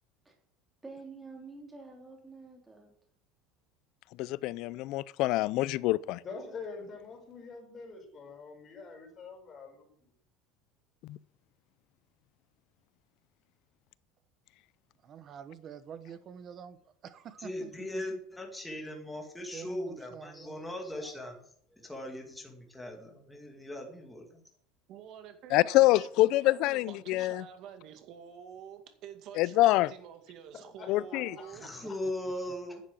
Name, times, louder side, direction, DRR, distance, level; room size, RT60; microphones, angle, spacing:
voice 1, 0.8-2.9, right 3 dB, 10° right, 3.4 m, -48 dB
voice 2, 4.2-6.2 11.1-11.2 25.5-27.4 29.4-29.9 30.9-31.4, left 17 dB, 55° left, 0.5 m, -26 dB
voice 3, 6.2-10.1 30.8-31.2, left 4 dB, 30° left, 5.1 m, -45 dB
voice 4, 15.0-18.2 19.5-20.5 31.8-31.9, right 8 dB, 35° right, 1.2 m, -47 dB
voice 5, 17.4-21.4 21.7-24.4 31.5-32.8, left 1 dB, 5° left, 2.2 m, -39 dB
voice 6, 24.9-31.7, right 8 dB, 50° right, 2.2 m, -48 dB
10.5 x 7.5 x 7.6 m
cardioid pair, 150°, 0 cm